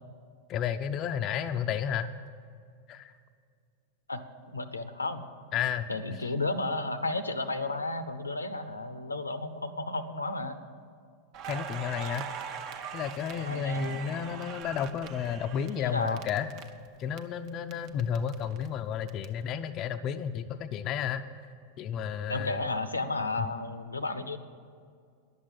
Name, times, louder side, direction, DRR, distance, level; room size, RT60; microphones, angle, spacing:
voice 1, 0.5-2.1 2.9-3.1 5.5-5.9 11.5-12.3 12.9-16.5 17.0-21.2 21.8-22.6, left 8 dB, 35° left, 8 dB, 0.4 m, -32 dB
voice 2, 4.1-5.2 5.9-10.6 13.3-14.4 15.8-16.2 22.3-24.4, left 2 dB, 80° left, 12 dB, 0.6 m, -33 dB
Crackle, 11.3-17.2 17.5-19.2, right 7 dB, 40° right, 0.7 m, -41 dB
11.0 x 7.4 x 9.6 m, 2.2 s
figure-of-eight pair, 90°, 0 cm